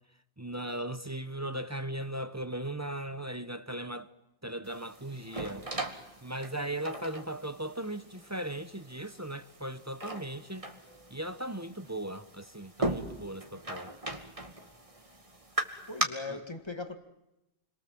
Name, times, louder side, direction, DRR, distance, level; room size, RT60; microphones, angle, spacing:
voice 1, 0.4-4.1 4.4-5.7 6.2-10.7 11.1-13.9 16.3-16.4, right 1 dB, 15° right, 0.9 m, -38 dB
sound 1, 4.6-16.0, right 2 dB, 30° right, 2.5 m, -39 dB
voice 2, 15.9-16.9, left 3 dB, 25° left, 2.1 m, -39 dB
30.0 x 23.0 x 7.7 m
omnidirectional pair, 1.1 m